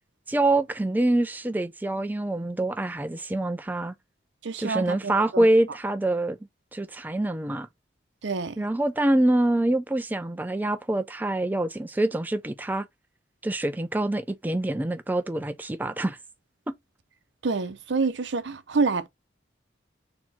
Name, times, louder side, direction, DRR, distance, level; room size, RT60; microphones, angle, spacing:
voice 1, 0.3-3.9 4.6-6.4 6.7-7.7 8.6-12.9 13.4-16.2 16.7-16.8, right 1 dB, 10° right, 0.3 m, -25 dB
voice 2, 4.4-5.5 8.2-8.7 17.4-19.1, right 4 dB, 80° right, 0.6 m, -27 dB
4.2 x 2.9 x 4.1 m
head